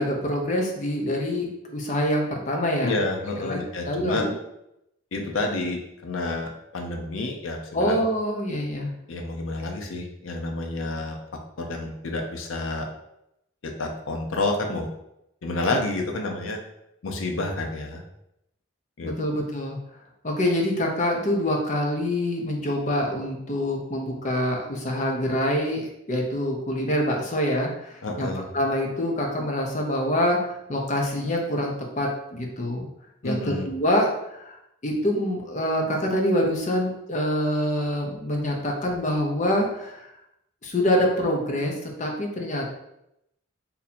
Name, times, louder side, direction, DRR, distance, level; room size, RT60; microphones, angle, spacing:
voice 1, 0.0-3.0 3.4-4.3 7.7-8.9 19.0-19.8 20.2-28.3 28.5-32.9 33.2-40.1 40.6-42.6, left 1 dB, 35° left, 1 dB, 0.6 m, -25 dB
voice 2, 2.8-4.3 5.1-8.0 9.1-11.2 11.6-12.9 13.6-14.9 15.4-16.6 17.0-18.0 19.0-19.4 28.0-28.5 33.2-33.7, left 2 dB, 80° left, 3 dB, 0.6 m, -29 dB
2.8 x 2.7 x 4.1 m, 0.83 s
head